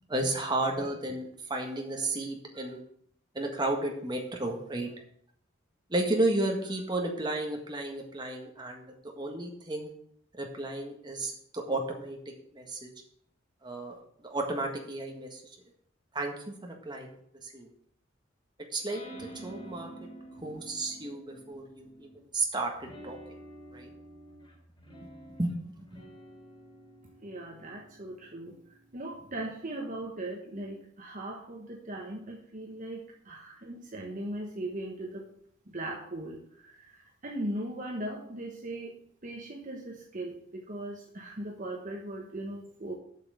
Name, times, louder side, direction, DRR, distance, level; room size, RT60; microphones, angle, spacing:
voice 1, 0.1-2.8 3.3-4.9 5.9-9.9 10.4-12.2 12.5-12.9 13.6-14.0 14.3-15.4 16.1-17.1 17.4-17.7 18.7-19.9 20.4-22.1 22.3-23.2 23.7-23.9 25.4-25.5, right 2 dB, 20° right, 1 dB, 1.6 m, -33 dB
sound 1, 18.9-22.3 22.8-29.6, right 1 dB, 25° left, 3.6 m, -49 dB
voice 2, 27.2-28.5 28.9-35.3 35.7-43.0, right 1 dB, 40° right, 0 dB, 1.1 m, -39 dB
8.0 x 5.9 x 7.0 m, 0.65 s
head